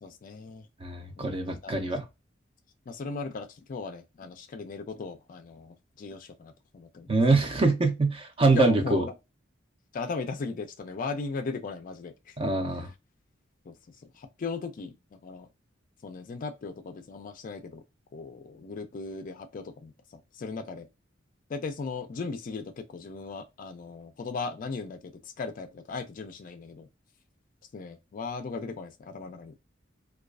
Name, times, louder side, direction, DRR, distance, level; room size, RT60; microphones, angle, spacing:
voice 1, 0.0-0.7 1.2-1.3 1.6-1.7 2.9-7.1 8.5-9.1 9.9-12.4 13.7-15.5 16.0-17.8 18.1-20.9 21.5-26.9 27.7-29.6, left 4 dB, 45° left, 0.4 m, -37 dB
voice 2, 0.8-2.0 7.1-9.0 12.4-12.9, right 3 dB, 30° right, 0.5 m, -24 dB
2.3 x 2.3 x 2.3 m
head